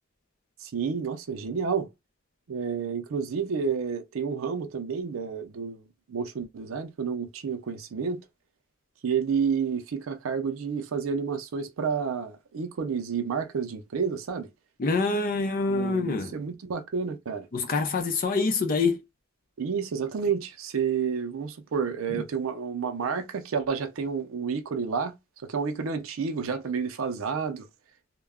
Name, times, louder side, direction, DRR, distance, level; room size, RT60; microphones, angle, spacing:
voice 1, 0.6-1.9 2.5-5.8 6.1-8.2 9.0-14.5 15.7-17.5 19.6-25.2 25.4-27.7, right 6 dB, 90° right, 0.5 m, -30 dB
voice 2, 14.8-16.4 17.5-19.0 22.1-22.2, left 3 dB, 45° left, 0.5 m, -26 dB
2.2 x 2.0 x 3.4 m
head